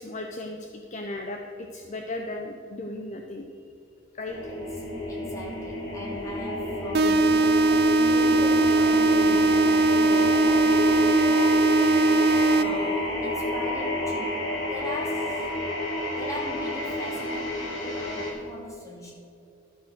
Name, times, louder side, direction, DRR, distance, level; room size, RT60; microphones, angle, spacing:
voice 1, 0.0-3.6 4.1-4.5, left 2 dB, 35° left, 3 dB, 0.6 m, -36 dB
sound 1, 4.3-18.3, left 1 dB, 85° left, 2.8 m, -29 dB
voice 2, 4.5-11.6 12.5-15.5 16.1-19.1, left 1 dB, 15° left, -3 dB, 2.6 m, -40 dB
sound 2, 6.9-12.9, right 2 dB, 50° right, 0.5 m, -20 dB
12.0 x 6.9 x 6.4 m, 2.6 s
head